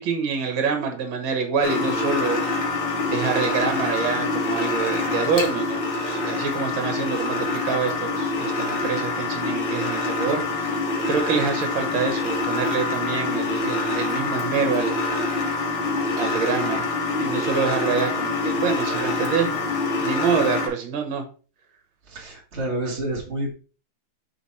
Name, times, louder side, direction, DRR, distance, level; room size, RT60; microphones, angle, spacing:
voice 1, 0.0-2.4 3.0-10.8 11.1-15.0 16.2-16.9 17.2-19.7 20.0-21.2, right 5 dB, 70° right, 5 dB, 2.0 m, -26 dB
sound 1, 1.6-20.7, left 3 dB, 65° left, 2.1 m, -25 dB
voice 2, 22.1-23.5, right 1 dB, 35° right, -3 dB, 1.9 m, -29 dB
5.9 x 3.9 x 4.2 m, 0.37 s
omnidirectional pair, 2.3 m